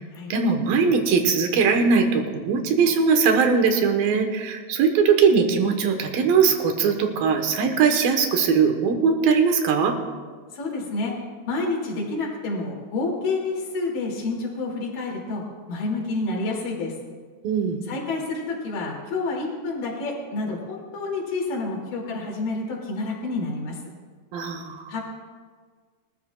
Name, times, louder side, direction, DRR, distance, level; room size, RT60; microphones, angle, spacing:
voice 1, 0.3-9.9 17.4-17.8 24.3-24.8, right 5 dB, 70° right, 4 dB, 2.8 m, -20 dB
voice 2, 10.6-11.1 11.5-15.4 15.7-16.9 17.9-23.8 24.9-25.0, left 3 dB, 60° left, -2 dB, 4.1 m, -29 dB
23.0 x 13.0 x 2.4 m, 1.5 s
omnidirectional pair, 4.5 m